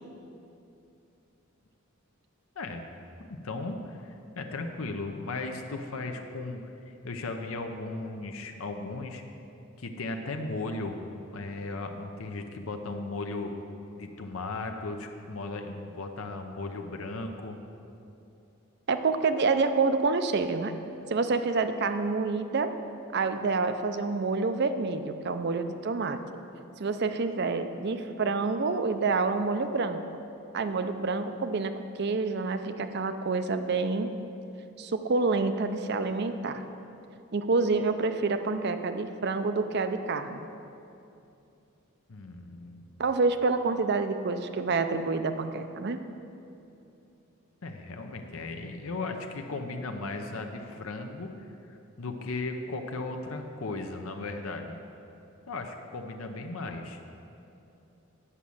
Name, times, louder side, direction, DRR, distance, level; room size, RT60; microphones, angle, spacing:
voice 1, 2.6-3.0 3.3-6.6 6.9-9.2 9.8-13.5 14.0-17.6 42.1-42.8 47.6-51.3 51.7-54.8 55.5-57.0, left 3 dB, 75° left, 4 dB, 0.7 m, -36 dB
voice 2, 18.9-20.7 21.1-22.7 23.1-26.2 26.8-30.0 30.5-34.2 34.8-36.6 37.3-40.5 43.0-46.0, right 4 dB, 50° right, 9 dB, 0.5 m, -28 dB
9.9 x 6.2 x 7.0 m, 2.8 s
head